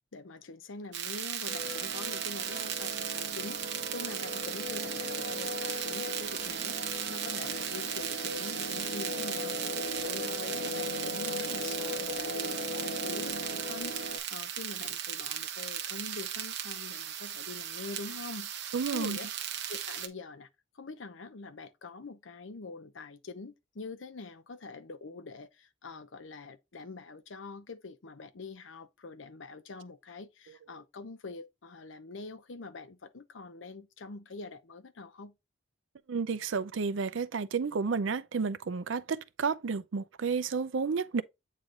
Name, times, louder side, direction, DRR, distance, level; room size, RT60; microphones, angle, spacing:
voice 1, 0.1-6.8 7.1-9.6 10.0-18.5 18.9-19.3 19.7-20.5 20.7-35.3, left 3 dB, 90° left, 0.7 m, -45 dB
sound 1, 0.9-20.1, right 10 dB, 65° right, 0.9 m, -37 dB
sound 2, 1.5-14.2, left 2 dB, 45° left, 1.7 m, -38 dB
voice 2, 18.7-19.2 36.1-41.2, right 5 dB, 85° right, 0.5 m, -31 dB
8.3 x 3.2 x 3.7 m
head